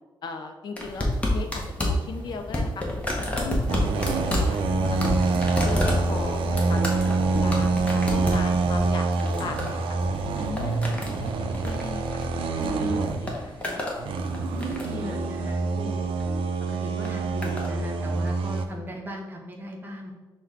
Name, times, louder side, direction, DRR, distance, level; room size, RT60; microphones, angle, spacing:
voice 1, 0.2-2.8 3.2-5.3 5.6-10.0 10.3-12.2 12.6-13.9, left 4 dB, 55° left, 5 dB, 0.5 m, -38 dB
sound 1, 0.8-12.7 13.0-14.0 14.3-15.1 16.0-16.3 17.0-17.7 18.6-18.7, left 1 dB, 15° left, 0.7 m, -30 dB
sound 2, 3.7-13.5 14.0-18.7, right 3 dB, 90° right, 0.4 m, -26 dB
voice 2, 14.2-16.1 16.7-20.1, equal, 25° right, 0 dB, 0.7 m, -37 dB
5.8 x 2.2 x 3.6 m, 1.2 s
wide cardioid pair, 160°, 9 cm